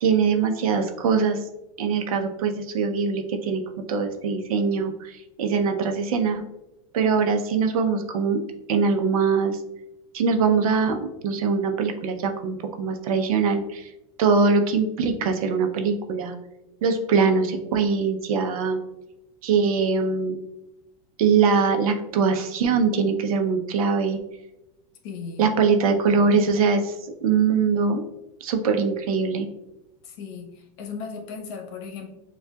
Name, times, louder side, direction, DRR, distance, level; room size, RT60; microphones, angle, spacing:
voice 1, 0.0-1.4 1.8-3.6 3.9-6.4 6.9-8.4 8.7-9.6 10.1-13.9 14.2-16.4 16.8-18.8 19.4-20.4 21.2-24.2 25.4-26.9 27.2-28.0 28.4-29.5, right 5 dB, 80° right, 5 dB, 0.7 m, -22 dB
voice 2, 25.0-25.5 30.0-32.1, left 5 dB, 55° left, 3 dB, 1.0 m, -36 dB
7.1 x 2.4 x 2.3 m, 0.94 s
supercardioid pair, 140°, 18 cm